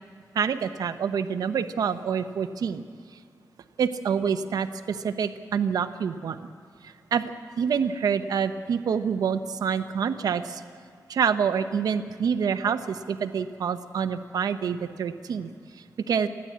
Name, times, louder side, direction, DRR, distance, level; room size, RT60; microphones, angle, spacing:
voice 1, 0.3-2.8 3.8-6.4 6.8-10.6 11.1-15.5 16.1-16.3, right 7 dB, 80° right, 9 dB, 0.9 m, -27 dB
29.0 x 10.5 x 8.6 m, 2.2 s
wide cardioid pair, 170°, 6 cm